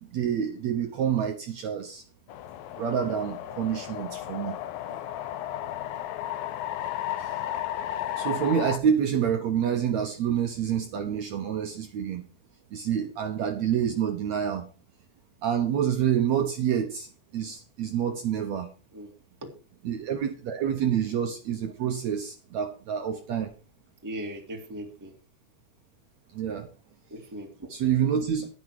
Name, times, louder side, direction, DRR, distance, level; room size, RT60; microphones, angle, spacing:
voice 1, 0.0-2.0 2.8-4.6 7.2-7.3 8.2-12.2 12.7-14.6 15.4-17.1 17.3-18.7 19.8-23.5 26.3-26.7 27.7-28.5, right 8 dB, 65° right, 5 dB, 1.9 m, -27 dB
sound 1, 2.3-8.8, left 12 dB, 90° left, 2.6 m, -34 dB
voice 2, 24.0-25.1 27.1-27.7, right 1 dB, 10° right, 2 dB, 1.3 m, -39 dB
10.5 x 9.5 x 4.7 m, 0.35 s
omnidirectional pair, 4.0 m